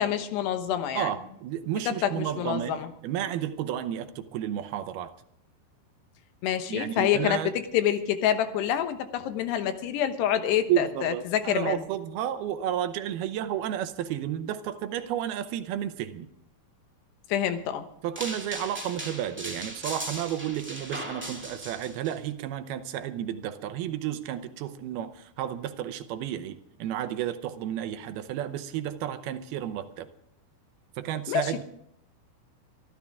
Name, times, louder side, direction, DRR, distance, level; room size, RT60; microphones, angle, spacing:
voice 1, 0.0-1.1 1.9-2.9 6.4-11.8 17.3-17.9 31.3-31.6, left 10 dB, 85° left, 3.3 m, -27 dB
voice 2, 1.0-5.1 6.7-7.5 10.7-16.3 18.0-30.1 31.0-31.6, right 11 dB, 75° right, 2.6 m, -32 dB
sound 1, 18.2-22.1, right 1 dB, 5° right, 0.9 m, -38 dB
24.0 x 13.0 x 3.6 m
omnidirectional pair, 4.7 m